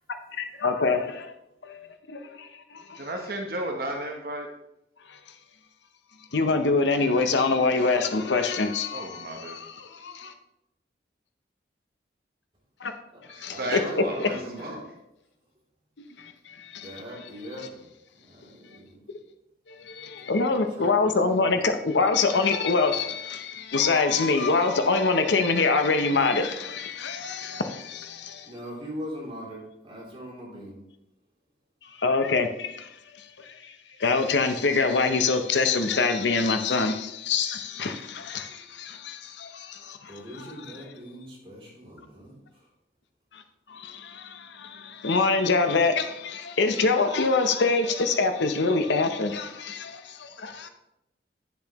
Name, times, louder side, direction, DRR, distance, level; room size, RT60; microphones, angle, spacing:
voice 1, 0.3-1.3 1.6-3.1 5.1-5.2 6.3-10.3 12.8-12.9 13.3-14.3 16.0-16.9 19.7-28.5 31.8-32.9 33.2-40.1 43.3-43.4 43.7-50.7, left 4 dB, 80° left, 0.8 m, -25 dB
voice 2, 3.0-4.5 8.9-9.6 13.6-14.2, right 1 dB, 55° right, 0.9 m, -32 dB
voice 3, 13.5-14.9 16.8-17.9 18.2-19.2 20.2-21.5 28.4-30.8 38.4-38.5 40.1-42.7, equal, 30° right, 3.1 m, -41 dB
9.9 x 7.0 x 3.0 m
head